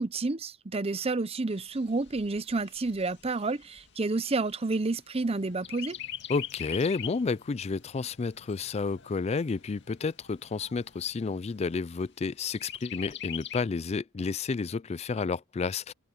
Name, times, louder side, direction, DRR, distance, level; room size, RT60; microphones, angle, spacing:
voice 1, 0.0-6.0, right 3 dB, 30° right, 0.7 m, -30 dB
Chirp tweet, 1.5-5.2 5.6-7.3 7.7-7.8 8.2-9.2 9.8-9.9 10.2-10.3 10.8-11.3 12.5-13.6, left 10 dB, 60° left, 2.3 m, -41 dB
sound 1, 5.1-11.8, left 2 dB, 75° left, 7.2 m, -60 dB
voice 2, 6.3-15.9, left 4 dB, 30° left, 0.4 m, -31 dB
head